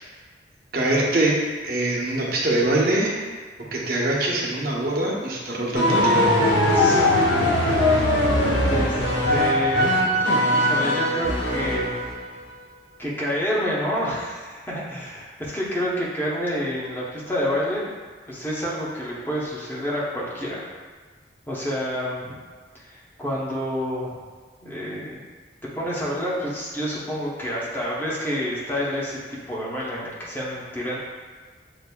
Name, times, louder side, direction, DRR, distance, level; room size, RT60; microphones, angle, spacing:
voice 1, 0.7-3.2 3.7-6.3, right 1 dB, 55° right, -4 dB, 0.8 m, -23 dB
sound 1, 5.7-12.2, left 1 dB, 85° left, 0.9 m, -20 dB
voice 2, 6.7-7.4 8.7-9.0 9.3-10.1 10.4-12.0 13.0-17.9 18.3-20.7 21.5-22.4 22.7-24.2 24.6-25.2 25.7-29.2 29.5-31.0, equal, 10° left, -6 dB, 0.8 m, -28 dB
6.6 x 2.6 x 2.2 m, 1.4 s
head